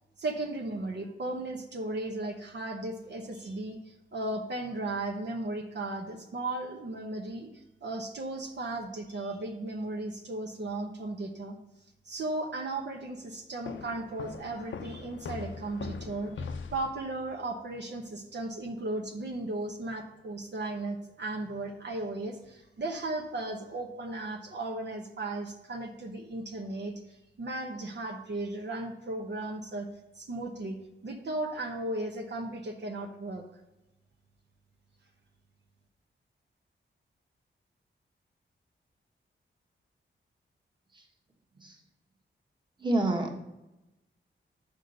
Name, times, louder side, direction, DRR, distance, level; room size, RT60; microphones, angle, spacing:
voice 1, 0.2-11.6 12.0-29.9 30.1-30.8 31.0-33.4, right 2 dB, 60° right, 1 dB, 1.0 m, -36 dB
sound 1, 13.6-17.3, left 5 dB, 75° left, 0.7 m, -41 dB
voice 2, 42.8-43.4, right 2 dB, 20° right, 1 dB, 1.4 m, -29 dB
6.4 x 5.2 x 6.4 m, 0.97 s
wide cardioid pair, 100°, 20 cm